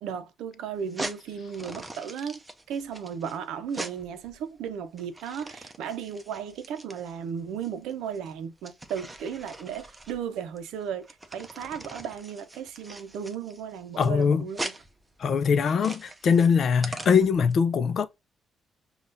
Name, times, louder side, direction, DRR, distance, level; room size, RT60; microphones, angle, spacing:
voice 1, 0.0-2.4 2.7-14.7, right 7 dB, 90° right, 0.6 m, -35 dB
sound 1, 0.8-17.5, right 2 dB, 15° right, 0.7 m, -42 dB
voice 2, 14.0-14.5 15.2-18.0, left 6 dB, 55° left, 0.5 m, -22 dB
5.4 x 2.4 x 2.6 m
cardioid pair, 90°, 0 cm